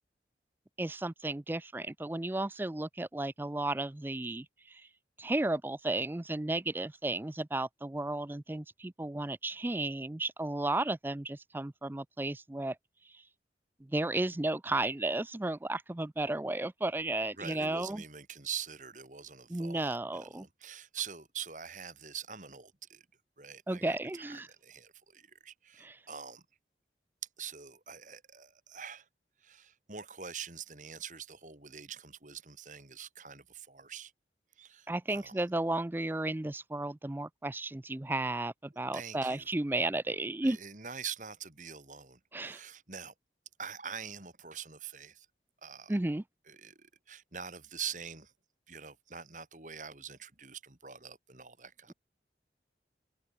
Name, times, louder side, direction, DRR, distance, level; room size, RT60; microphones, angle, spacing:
voice 1, 0.8-4.8 5.2-12.8 13.8-18.0 19.5-20.5 23.7-24.5 25.8-26.0 34.9-40.6 42.3-42.6 45.9-46.2, right 2 dB, 10° right, 0.4 m, -33 dB
voice 2, 17.4-23.0 23.4-26.4 27.4-29.0 29.4-34.1 34.6-35.3 38.9-39.5 40.4-43.1 43.6-45.3 45.6-45.9 46.5-48.3 48.7-51.9, right 7 dB, 45° right, 2.7 m, -44 dB
head